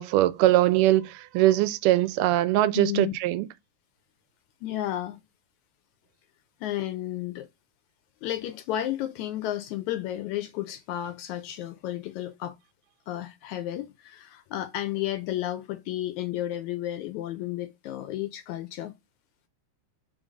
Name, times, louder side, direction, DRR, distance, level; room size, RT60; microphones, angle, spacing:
voice 1, 0.0-3.5, right 15 dB, 85° right, 2.1 m, -22 dB
voice 2, 2.7-3.1 4.6-5.2 6.6-7.5 8.2-12.6 13.1-19.0, left 13 dB, 80° left, 1.7 m, -32 dB
5.2 x 3.8 x 4.9 m
omnidirectional pair, 3.7 m